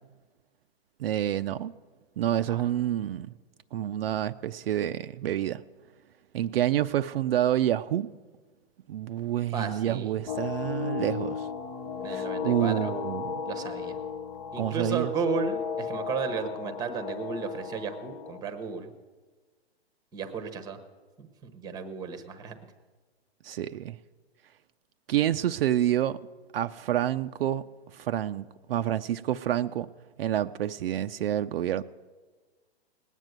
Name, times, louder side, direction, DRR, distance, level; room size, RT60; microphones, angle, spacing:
voice 1, 1.0-1.7 2.2-3.3 3.7-5.6 6.3-8.1 8.9-11.5 12.1-13.3 14.6-15.1 23.4-24.0 25.1-26.2 26.5-27.6 27.9-29.9 30.2-31.8, right 11 dB, 65° right, 0.5 m, -28 dB
voice 2, 9.5-10.1 12.0-12.9 13.5-14.0 14.5-18.9 20.1-20.8 21.2-22.5, right 5 dB, 10° right, 0.9 m, -34 dB
sound 1, 10.3-18.4, left 6 dB, 20° left, 0.5 m, -35 dB
19.0 x 9.2 x 8.0 m
hypercardioid pair, 155°, 32 cm